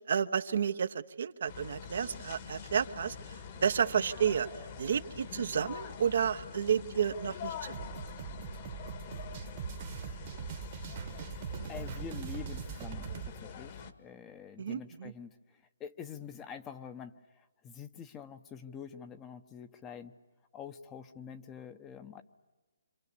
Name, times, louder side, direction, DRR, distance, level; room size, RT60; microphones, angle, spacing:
voice 1, 0.1-4.5 4.8-7.9 14.6-15.1, right 7 dB, 60° right, 9 dB, 1.1 m, -31 dB
sound 1, 1.5-13.9, left 7 dB, 40° left, 1.9 m, -45 dB
sound 2, 7.7-13.3, right 8 dB, 40° right, 1.4 m, -42 dB
voice 2, 11.7-20.1 20.5-22.2, left 7 dB, 15° left, 8 dB, 1.1 m, -46 dB
27.0 x 27.0 x 7.0 m, 1.2 s
hypercardioid pair, 150°, 0 cm